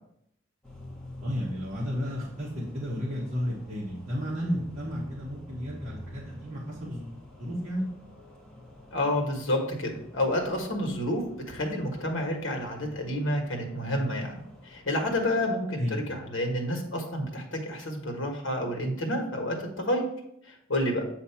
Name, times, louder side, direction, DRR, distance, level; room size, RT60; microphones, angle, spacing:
sound 1, 0.6-15.5, left 1 dB, 5° left, 1.2 m, -48 dB
voice 1, 1.2-7.1 7.4-7.9 15.8-16.1, equal, 35° right, -7 dB, 1.2 m, -32 dB
voice 2, 8.9-11.2 11.5-14.3 14.6-20.0 20.4-21.0, left 1 dB, 70° left, 2 dB, 1.5 m, -29 dB
8.1 x 2.9 x 5.7 m, 0.75 s
head